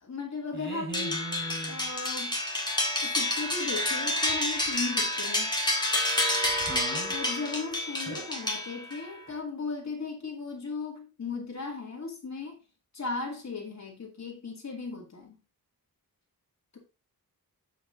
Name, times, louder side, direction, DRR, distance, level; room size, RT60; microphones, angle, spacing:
voice 1, 0.0-1.3 1.6-2.3 3.0-5.5 7.1-12.6 12.9-15.4 16.7-16.8, left 4 dB, 50° left, -1 dB, 2.4 m, -36 dB
voice 2, 0.5-1.9 6.6-7.1 8.0-8.3, right 2 dB, 35° right, -1 dB, 4.7 m, -38 dB
sound 1, 0.9-9.1, left 1 dB, 10° left, 1.7 m, -29 dB
7.5 x 5.7 x 3.8 m, 0.28 s
wide cardioid pair, 140°, 36 cm